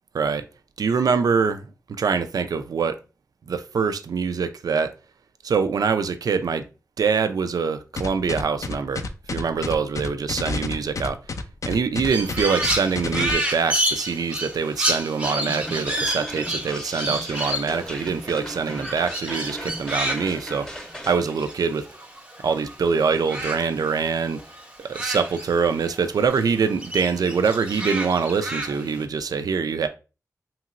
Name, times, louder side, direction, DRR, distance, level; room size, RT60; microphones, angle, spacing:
voice 1, 0.1-0.5 0.8-3.0 3.5-4.9 5.4-6.7 7.0-11.2 11.7-21.9 22.4-24.4 24.8-29.9, right 5 dB, 75° right, 0.3 m, -24 dB
sound 1, 8.0-13.3, left 3 dB, 55° left, 0.4 m, -29 dB
Crow, 12.0-22.7 23.0-26.0 26.3-29.0, right 1 dB, 20° right, 0.7 m, -30 dB
sound 2, 15.2-21.1, equal, 10° left, 0.7 m, -36 dB
2.9 x 2.9 x 2.4 m
cardioid pair, 45°, 6 cm